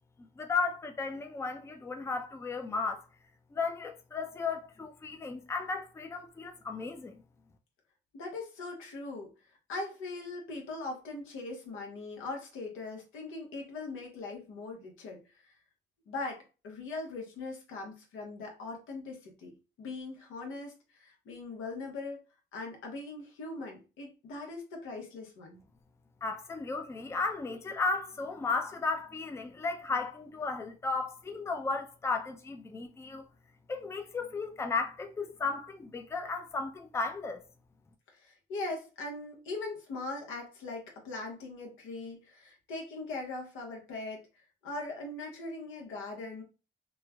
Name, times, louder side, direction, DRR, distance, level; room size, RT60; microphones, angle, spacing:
voice 1, 0.4-3.0 3.5-7.2 26.2-33.3 33.7-37.4, left 4 dB, 15° left, 0.4 m, -34 dB
voice 2, 8.1-9.3 9.7-15.6 16.1-22.2 22.5-25.6 38.1-44.2 44.6-46.4, left 3 dB, 90° left, 0.9 m, -40 dB
3.1 x 2.1 x 2.2 m
cardioid pair, 90°, 20 cm